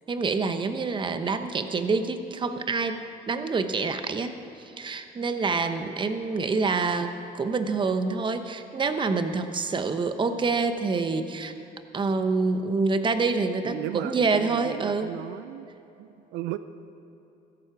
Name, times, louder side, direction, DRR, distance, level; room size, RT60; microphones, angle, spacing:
voice 1, 0.1-3.0 3.3-4.3 4.8-11.5 11.9-15.1, right 4 dB, 30° right, 9 dB, 1.0 m, -26 dB
voice 2, 13.6-15.7 16.0-16.6, right 13 dB, 90° right, 12 dB, 0.5 m, -35 dB
16.0 x 14.0 x 4.8 m, 3.0 s
cardioid pair, 110°, 17 cm